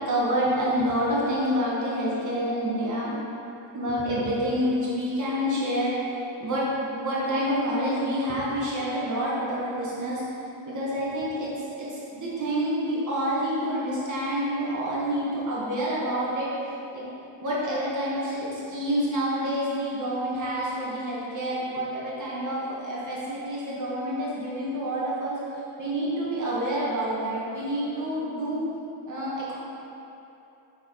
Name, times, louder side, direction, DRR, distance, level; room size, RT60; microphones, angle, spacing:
voice 1, 0.0-3.1 3.7-6.7 6.9-10.2 10.7-16.5 16.9-17.0 17.4-25.4 25.8-28.6 29.1-29.5, equal, 35° right, -7 dB, 1.5 m, -28 dB
6.3 x 4.3 x 4.6 m, 2.9 s
wide cardioid pair, 125°, 50 cm